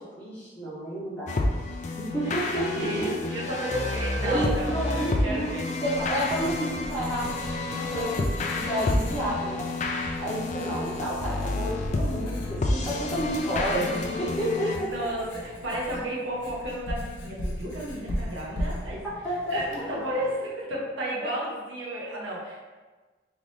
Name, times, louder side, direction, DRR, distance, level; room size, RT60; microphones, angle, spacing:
voice 1, 0.1-1.4 2.1-3.3 4.2-5.5 5.8-8.4 8.7-9.7 10.2-13.9 14.2-15.1 19.2-19.8 21.2-21.3, right 1 dB, 5° left, -11 dB, 1.3 m, -30 dB
sound 1, 1.3-14.8, left 2 dB, 35° left, 0.3 m, -30 dB
voice 2, 2.8-5.7 12.9-13.1 13.7-19.0 19.5-22.6, equal, 75° right, -4 dB, 1.1 m, -33 dB
Writing, 5.5-20.3, equal, 75° left, 0.7 m, -39 dB
3.7 x 3.2 x 2.7 m, 1.3 s
head